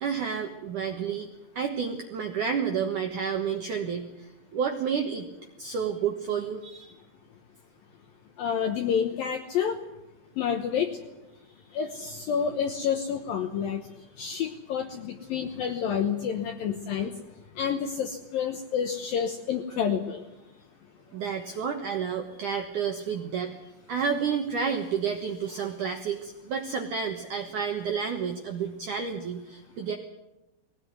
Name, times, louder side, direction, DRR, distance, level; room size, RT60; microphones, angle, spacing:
voice 1, 0.0-1.3 1.6-5.3 5.6-6.9 17.0-17.1 21.1-30.0, right 6 dB, 70° right, 4 dB, 1.9 m, -30 dB
voice 2, 8.4-9.8 10.4-10.9 11.7-13.8 14.2-17.1 17.6-20.2, left 7 dB, 75° left, 6 dB, 2.1 m, -29 dB
21.0 x 17.0 x 9.5 m, 0.96 s
omnidirectional pair, 5.6 m